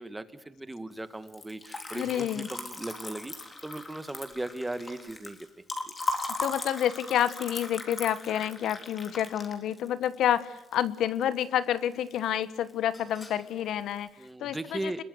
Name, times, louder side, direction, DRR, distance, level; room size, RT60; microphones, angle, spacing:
voice 1, 0.0-5.4 14.2-15.0, right 2 dB, 10° right, 12 dB, 1.6 m, -37 dB
Liquid, 1.2-11.4 11.8-12.4 12.7-13.5, left 2 dB, 20° left, 3.6 m, -38 dB
voice 2, 1.9-2.5 6.4-14.1 14.4-15.0, left 10 dB, 70° left, 15 dB, 1.2 m, -29 dB
28.0 x 21.5 x 7.9 m, 0.93 s
cardioid pair, 140°, 0 cm